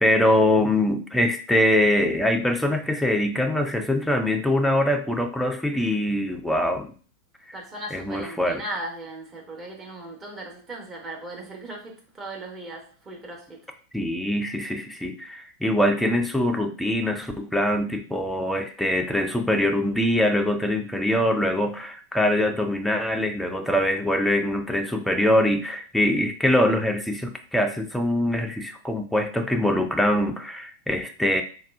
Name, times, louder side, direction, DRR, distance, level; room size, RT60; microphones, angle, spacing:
voice 1, 0.0-6.9 7.9-8.6 13.9-31.4, left 1 dB, 5° left, 0.4 m, -23 dB
voice 2, 7.5-13.6, right 1 dB, 20° right, 0.9 m, -37 dB
3.5 x 2.3 x 2.4 m
figure-of-eight pair, 90°, 0 cm